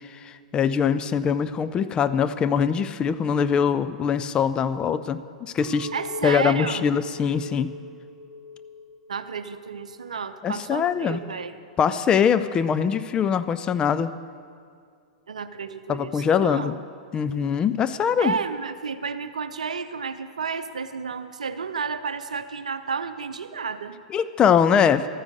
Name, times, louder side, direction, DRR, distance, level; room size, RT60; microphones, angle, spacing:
voice 1, 0.1-5.9 6.2-7.7 10.4-11.2 11.8-14.1 15.9-16.7 17.1-18.3 24.1-25.1, left 7 dB, 20° left, 12 dB, 0.5 m, -22 dB
Chink clink, 5.6-9.9 10.2-11.0, left 2 dB, 5° right, 2.2 m, -40 dB
voice 2, 5.9-6.9 9.1-11.5 15.3-16.7 18.2-24.0, right 5 dB, 70° right, 11 dB, 0.7 m, -31 dB
13.5 x 9.6 x 6.6 m, 2.2 s
figure-of-eight pair, 100°, 4 cm